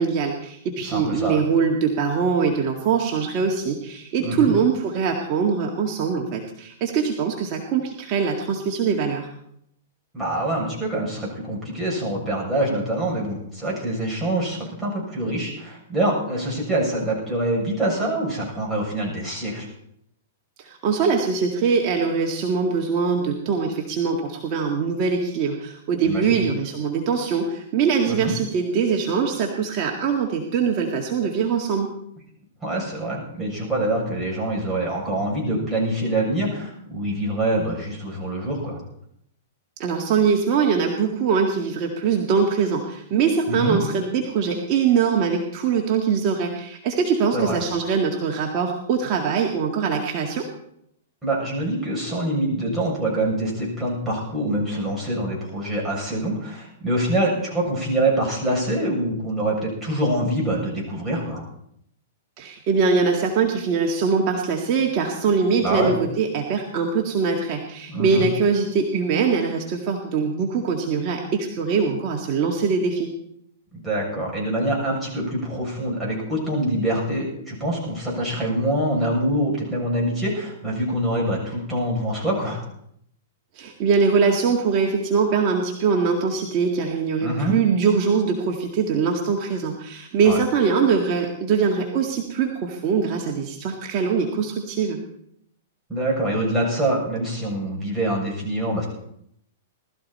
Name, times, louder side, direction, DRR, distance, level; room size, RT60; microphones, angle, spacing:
voice 1, 0.0-9.3 20.6-31.9 39.8-50.4 62.4-73.1 83.6-95.0, right 5 dB, 40° right, 0 dB, 1.9 m, -22 dB
voice 2, 0.8-1.4 4.2-4.5 10.1-19.7 26.0-26.4 28.1-28.3 32.6-38.8 43.5-43.8 47.3-47.6 51.2-61.4 65.6-65.9 67.9-68.3 73.7-82.6 87.2-87.5 90.2-90.4 95.9-98.9, right 1 dB, ahead, -6 dB, 7.3 m, -25 dB
20.0 x 13.5 x 4.3 m, 0.72 s
hypercardioid pair, 145°, 0 cm